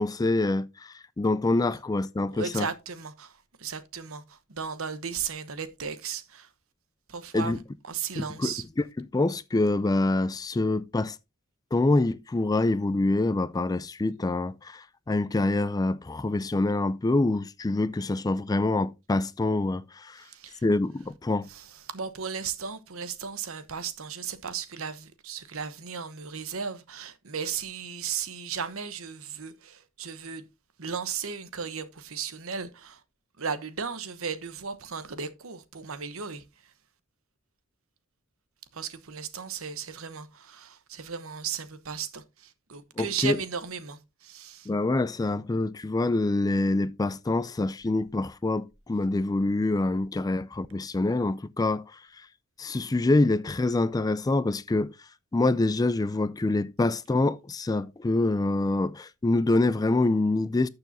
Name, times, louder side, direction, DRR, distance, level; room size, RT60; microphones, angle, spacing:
voice 1, 0.0-2.7 7.3-7.6 8.2-8.5 9.0-11.2 11.7-20.2 20.6-21.5 43.0-43.4 44.7-51.8 52.6-54.9 55.3-60.7, left 2 dB, 15° left, 0.3 m, -26 dB
voice 2, 2.3-6.5 7.1-7.6 7.8-8.6 20.2-20.6 21.5-30.4 30.8-33.0 33.4-36.4 38.7-44.7, right 6 dB, 70° right, 1.0 m, -35 dB
12.0 x 6.9 x 2.7 m
head